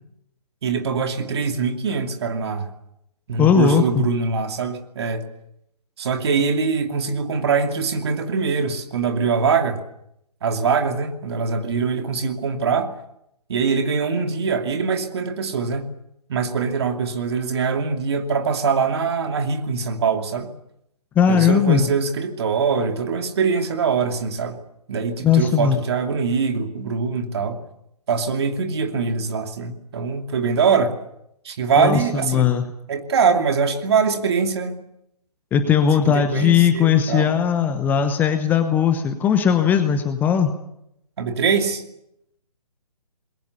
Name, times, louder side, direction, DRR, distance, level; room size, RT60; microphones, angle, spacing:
voice 1, 0.6-2.7 3.3-5.3 6.0-9.8 10.4-12.9 13.5-15.9 16.3-20.5 21.3-24.6 24.9-27.6 28.1-31.0 31.4-32.5 32.9-34.8 36.0-37.3 41.2-41.8, right 5 dB, 40° right, 6 dB, 2.6 m, -23 dB
voice 2, 3.4-4.0 21.1-21.9 25.2-25.8 31.8-32.6 35.5-40.5, left 8 dB, 10° left, 8 dB, 0.9 m, -18 dB
27.5 x 21.5 x 6.9 m, 0.79 s
figure-of-eight pair, 140°, 20 cm